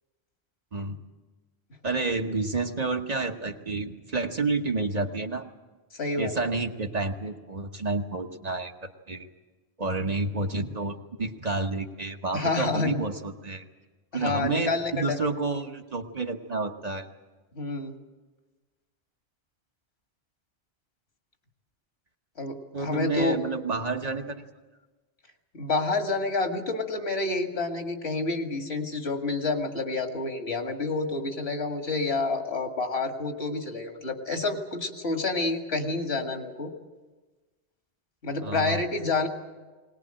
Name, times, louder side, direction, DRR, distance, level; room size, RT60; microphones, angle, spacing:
voice 1, 1.8-5.5 6.2-8.7 9.1-9.3 9.8-13.6 14.1-17.1 22.7-24.4 38.4-38.8, right 3 dB, 40° right, 4 dB, 1.2 m, -30 dB
voice 2, 6.0-6.3 12.3-13.0 14.1-15.2 17.6-17.9 22.4-23.4 25.5-36.7 38.2-39.3, left 3 dB, 75° left, 5 dB, 2.2 m, -28 dB
20.5 x 19.0 x 8.8 m, 1.3 s
omnidirectional pair, 1.1 m